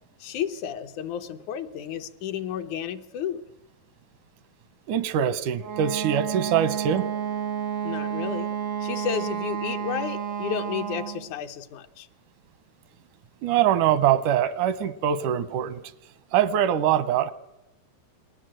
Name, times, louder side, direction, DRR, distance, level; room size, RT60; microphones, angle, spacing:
voice 1, 0.2-3.4 7.8-8.5 8.8-12.1, left 9 dB, 80° left, 8 dB, 2.5 m, -32 dB
voice 2, 4.9-7.1 13.4-15.8 16.3-17.3, right 10 dB, 85° right, 15 dB, 2.5 m, -23 dB
Wind instrument woodwind instrument, 5.6-11.3, right 8 dB, 65° right, 0.7 m, -30 dB
27.5 x 20.0 x 7.7 m, 0.96 s
omnidirectional pair, 3.5 m